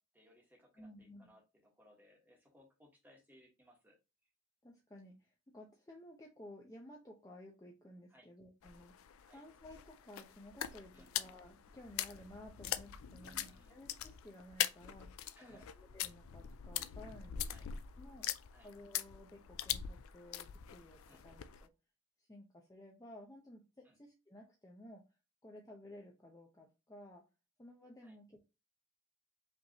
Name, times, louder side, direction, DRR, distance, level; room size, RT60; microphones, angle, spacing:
voice 1, 0.0-4.0 8.1-8.3 9.2-9.5 10.9-11.1 13.2-13.8 15.3-15.7 17.5-17.7 18.5-18.7 21.1-21.2 23.8-24.0 28.0-28.2, equal, 10° right, -1 dB, 1.4 m, -64 dB
voice 2, 0.8-1.3 4.6-18.3 18.6-21.7 22.2-25.0 25.4-27.3 27.6-28.5, left 1 dB, 15° left, 0 dB, 0.7 m, -55 dB
sound 1, 8.6-21.7, left 11 dB, 70° left, 0.4 m, -43 dB
5.2 x 3.2 x 2.8 m, 0.27 s
head